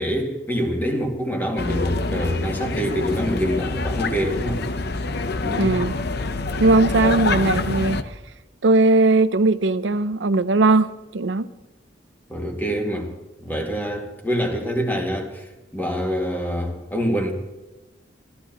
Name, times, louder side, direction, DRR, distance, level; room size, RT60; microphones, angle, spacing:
voice 1, 0.0-4.6 5.4-5.7 12.3-13.1 13.4-17.3, equal, 10° left, 2.2 m, -25 dB
sound 1, 1.6-8.0, left 3 dB, 60° left, 0.9 m, -26 dB
voice 2, 5.6-5.9 6.6-8.0 8.6-11.5, right 2 dB, 75° right, 0.7 m, -18 dB
26.0 x 14.0 x 3.0 m
head